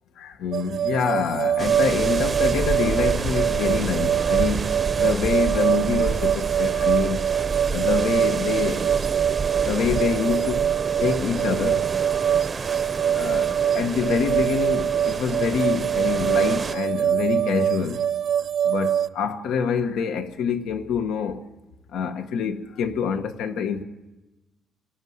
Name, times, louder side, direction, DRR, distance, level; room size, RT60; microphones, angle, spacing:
voice 1, 0.2-7.3 7.7-9.1 9.6-10.6 11.0-11.9 13.1-18.0 18.6-21.4 21.9-23.8, left 6 dB, 85° left, 1.5 m, -26 dB
sound 1, 0.5-19.1, right 9 dB, 55° right, 0.7 m, -24 dB
sound 2, 1.6-16.8, right 4 dB, 20° right, 0.7 m, -29 dB
27.5 x 14.5 x 9.6 m
cardioid pair, 175°, 0 cm